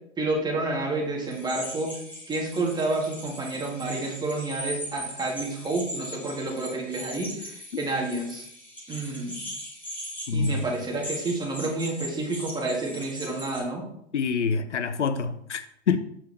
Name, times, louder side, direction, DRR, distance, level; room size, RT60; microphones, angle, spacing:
voice 1, 0.2-1.9 2.3-8.4 8.9-9.4 10.3-13.9, right 2 dB, 10° right, -1 dB, 1.7 m, -29 dB
sound 1, 1.3-13.6, equal, 5° left, 1.5 m, -39 dB
voice 2, 10.3-10.6 14.1-16.0, left 5 dB, 75° left, 11 dB, 0.7 m, -26 dB
7.4 x 6.6 x 3.3 m, 0.72 s
figure-of-eight pair, 110°, 35 cm